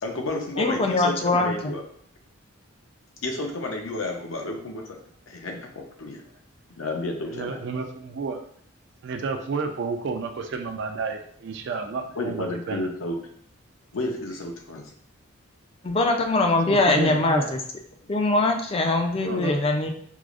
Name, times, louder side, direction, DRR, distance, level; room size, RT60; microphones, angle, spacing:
voice 1, 0.0-1.8 3.2-5.0 5.3-5.7 6.0-6.2 6.8-7.6 12.2-13.2 13.9-14.9, left 2 dB, 75° left, 2 dB, 0.6 m, -31 dB
voice 2, 0.6-1.5 15.8-17.6 18.1-19.9, left 2 dB, 25° left, 4 dB, 0.3 m, -22 dB
voice 3, 7.3-8.4 9.0-12.9 16.7-17.5 19.1-19.6, right 4 dB, 55° right, 5 dB, 0.3 m, -31 dB
4.7 x 2.0 x 2.4 m, 0.62 s
head